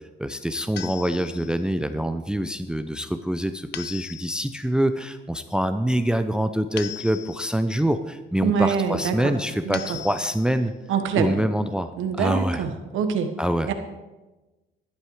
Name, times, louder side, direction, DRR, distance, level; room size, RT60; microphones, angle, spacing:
voice 1, 0.2-10.7 11.1-11.9 12.2-12.6 13.4-13.7, equal, 5° right, 10 dB, 0.6 m, -25 dB
sound 1, 0.8-1.7 3.7-4.6 6.8-7.7 9.7-10.6, left 11 dB, 60° left, 0.5 m, -38 dB
voice 2, 8.4-9.3 9.6-10.0 10.9-11.4 11.9-13.3 13.7-13.8, right 6 dB, 85° right, 7 dB, 1.3 m, -25 dB
11.5 x 11.0 x 4.8 m, 1.1 s
cardioid pair, 90°, 20 cm